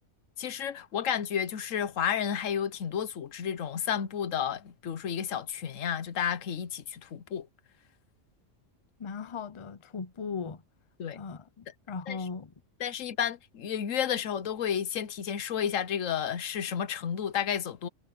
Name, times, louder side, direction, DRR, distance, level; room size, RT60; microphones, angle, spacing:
voice 1, 0.4-7.5 11.0-11.2 12.1-12.2 12.8-17.9, left 8 dB, 90° left, 1.3 m, -31 dB
voice 2, 9.0-10.6 11.1-12.5, left 5 dB, 30° left, 0.7 m, -38 dB
omnidirectional pair, 1.3 m